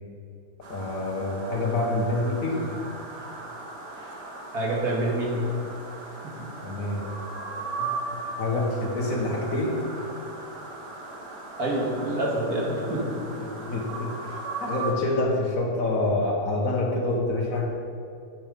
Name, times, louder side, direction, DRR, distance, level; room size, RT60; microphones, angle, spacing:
sound 1, 0.6-14.9, right 3 dB, 85° right, 2.0 m, -38 dB
voice 1, 0.7-2.8 6.6-7.0 8.4-9.8 13.4-17.7, left 2 dB, 55° left, -1 dB, 1.8 m, -27 dB
voice 2, 4.5-5.5 7.8-7.9 11.6-13.0, right 1 dB, 65° right, -3 dB, 2.4 m, -27 dB
9.0 x 9.0 x 5.2 m, 2.5 s
omnidirectional pair, 1.7 m